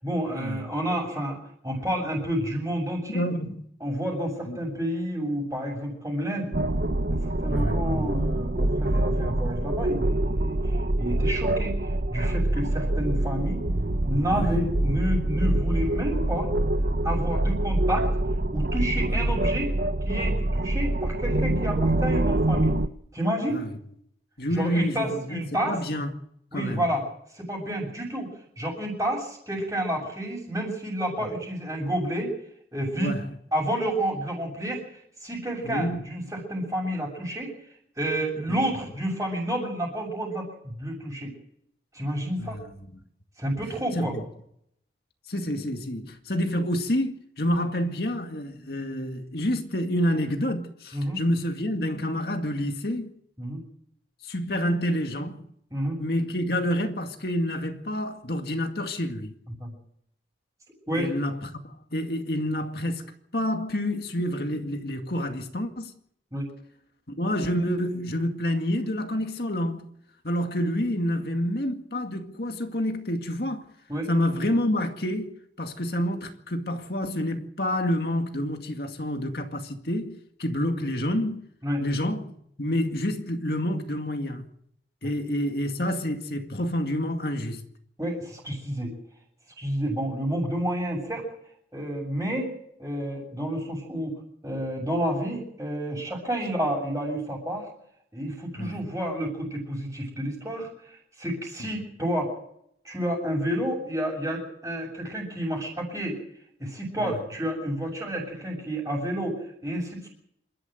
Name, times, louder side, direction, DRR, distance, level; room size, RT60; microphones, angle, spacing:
voice 1, 0.0-1.4 1.6-3.2 3.8-6.5 7.1-13.6 14.0-16.5 17.0-18.1 18.5-19.7 20.0-22.7 23.1-23.6 24.5-25.8 26.5-27.0 27.3-28.3 28.6-32.3 32.7-33.1 33.5-37.5 38.0-41.3 41.9-42.6 43.4-44.1 50.9-51.2 53.4-53.6 55.7-56.0 59.6-59.7 60.9-61.1 66.3-66.5 73.9-74.1 81.6-81.8 85.0-85.1 88.0-88.9 89.6-91.2 91.7-92.5 92.8-94.2 94.4-97.7 98.1-102.4 102.8-106.2 106.6-110.1, right 1 dB, 15° right, 6.9 m, -30 dB
voice 2, 3.1-3.6 4.5-4.6 7.5-7.8 14.3-14.7 19.1-19.2 23.5-23.7 24.4-25.4 25.7-26.1 26.5-26.8 31.2-31.3 33.0-33.3 35.6-36.0 38.5-38.6 42.4-43.0 43.9-44.2 45.3-53.1 54.2-55.5 56.0-59.3 61.0-63.0 63.3-65.9 67.1-69.8 70.2-73.6 74.1-81.4 81.8-82.3 82.6-84.4 85.0-87.6 98.6-98.9 107.0-107.2, equal, 55° left, 2.1 m, -28 dB
sound 1, 6.5-22.9, right 1 dB, 55° right, 1.0 m, -25 dB
27.5 x 13.0 x 8.0 m
head